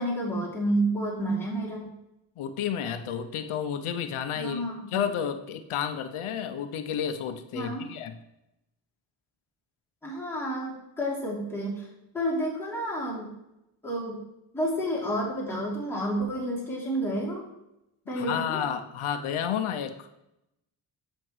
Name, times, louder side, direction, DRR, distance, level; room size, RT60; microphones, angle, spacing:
voice 1, 0.0-1.9 4.4-4.9 7.5-7.9 10.0-11.9 12.1-13.3 13.8-14.2 14.5-17.4 18.1-18.6, right 1 dB, 5° left, -7 dB, 2.9 m, -30 dB
voice 2, 2.4-4.6 4.9-8.2 18.1-20.1, left 8 dB, 80° left, 9 dB, 0.7 m, -31 dB
7.8 x 6.5 x 3.1 m, 0.86 s
cardioid pair, 55°, 49 cm